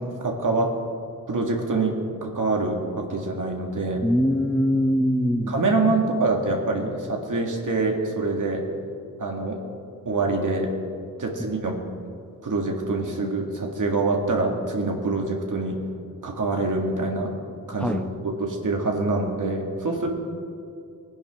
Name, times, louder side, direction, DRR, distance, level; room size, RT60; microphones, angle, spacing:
voice 1, 0.2-0.7 1.3-4.0 5.5-8.6 9.2-9.6 10.1-10.7 11.2-11.8 12.4-15.8 16.2-17.3 17.7-18.0 18.2-20.1, right 3 dB, 65° right, 1 dB, 2.1 m, -25 dB
voice 2, 4.0-5.5 17.8-18.0, equal, 5° left, 3 dB, 1.0 m, -22 dB
19.5 x 10.5 x 3.7 m, 2.5 s
cardioid pair, 60°, 34 cm